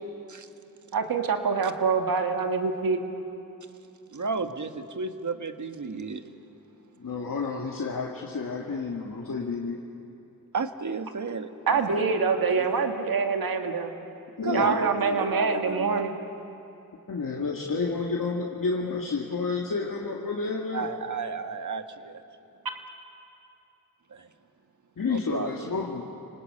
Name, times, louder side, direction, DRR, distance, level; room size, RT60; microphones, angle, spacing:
voice 1, 0.9-3.0 11.7-13.9 14.5-16.1, right 5 dB, 80° right, 4 dB, 2.1 m, -25 dB
voice 2, 4.1-6.2 10.5-12.0 12.5-12.7 14.4-16.0 20.7-22.2 24.1-24.3 25.1-25.5, right 4 dB, 55° right, 8 dB, 1.5 m, -32 dB
voice 3, 7.0-9.8 14.4-14.8 17.1-20.9 25.0-26.0, left 4 dB, 65° left, -2 dB, 2.1 m, -30 dB
29.0 x 20.0 x 8.6 m, 2.8 s
cardioid pair, 50°, 35 cm